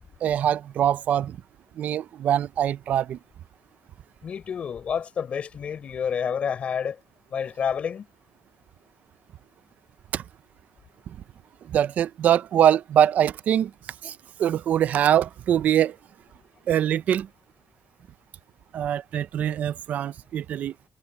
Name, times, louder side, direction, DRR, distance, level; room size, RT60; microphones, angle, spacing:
voice 1, 0.2-1.4 1.8-3.2 10.1-10.2 11.7-13.7 14.0-16.0 16.7-17.3 18.7-20.7, right 10 dB, 65° right, 0.6 m, -23 dB
voice 2, 4.2-7.0 7.3-8.1, left 7 dB, 45° left, 4.7 m, -29 dB
cardioid pair, 140°, 3 cm